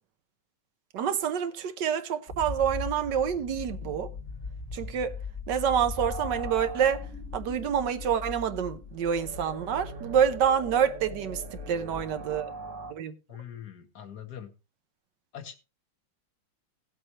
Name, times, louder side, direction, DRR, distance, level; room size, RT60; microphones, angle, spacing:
voice 1, 0.9-4.1 4.7-5.1 5.5-7.1 7.3-11.4 11.7-12.5 12.9-13.1, right 8 dB, 75° right, 1.4 m, -27 dB
sound 1, 2.3-12.4, left 4 dB, 40° left, 1.6 m, -40 dB
sound 2, 6.0-12.9, right 4 dB, 50° right, 1.2 m, -42 dB
voice 2, 13.3-14.5 15.3-15.6, left 9 dB, 60° left, 1.7 m, -42 dB
18.0 x 7.7 x 3.0 m
omnidirectional pair, 2.0 m